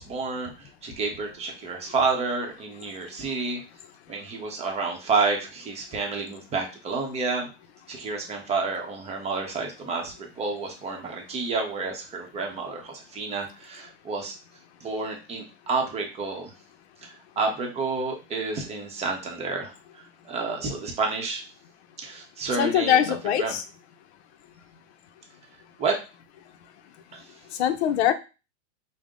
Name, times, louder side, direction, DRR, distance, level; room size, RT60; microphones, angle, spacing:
voice 1, 0.0-3.6 4.1-7.5 7.9-14.3 14.8-16.5 17.0-19.7 20.3-21.4 22.0-23.6 25.8-26.0 27.1-27.2, right 4 dB, 20° right, 1 dB, 0.8 m, -29 dB
voice 2, 22.6-23.6 27.6-28.1, left 10 dB, 70° left, 10 dB, 0.7 m, -22 dB
5.5 x 2.1 x 3.6 m, 0.30 s
supercardioid pair, 150°, 34 cm